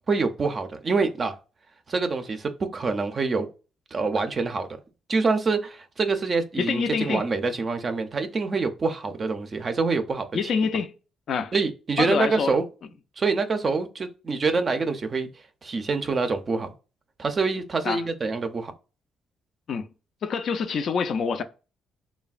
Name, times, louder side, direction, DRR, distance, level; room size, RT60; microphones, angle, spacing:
voice 1, 0.1-1.4 1.9-3.5 3.9-4.8 5.1-10.3 11.5-12.6 13.2-15.3 15.6-16.7 17.2-18.7, right 4 dB, 40° right, 0.4 m, -26 dB
voice 2, 6.6-7.3 10.3-10.9 11.3-11.5 12.0-12.5 17.8-18.1 19.7-19.9 20.2-21.4, left 5 dB, 60° left, 0.3 m, -26 dB
3.2 x 2.1 x 2.3 m
cardioid pair, 90°, 0 cm